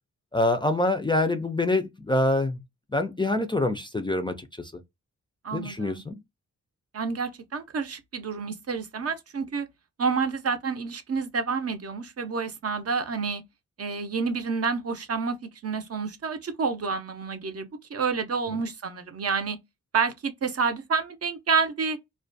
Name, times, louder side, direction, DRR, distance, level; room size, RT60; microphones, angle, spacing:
voice 1, 0.3-2.6 2.9-4.7 5.5-6.2, left 2 dB, 15° left, 0.4 m, -25 dB
voice 2, 5.4-6.0 6.9-9.7 10.0-13.4 13.8-15.4 15.6-19.6 19.9-22.0, right 5 dB, 50° right, 0.6 m, -29 dB
2.4 x 2.1 x 2.5 m
wide cardioid pair, 90°, 31 cm